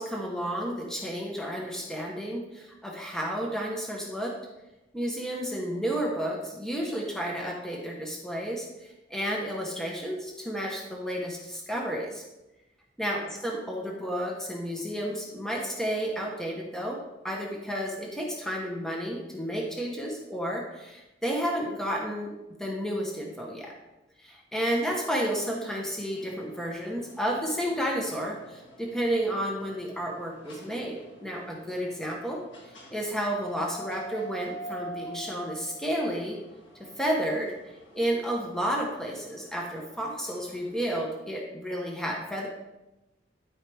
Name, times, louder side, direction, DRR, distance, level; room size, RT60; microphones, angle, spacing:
voice 1, 0.0-4.3 4.9-8.7 9.1-12.2 13.0-22.3 22.6-23.7 24.2-32.4 32.9-36.4 37.0-37.5 37.9-42.5, equal, 5° left, -2 dB, 1.0 m, -31 dB
sound 1, 26.1-41.0, right 2 dB, 80° left, 1.9 m, -47 dB
12.5 x 4.9 x 3.4 m, 0.99 s
head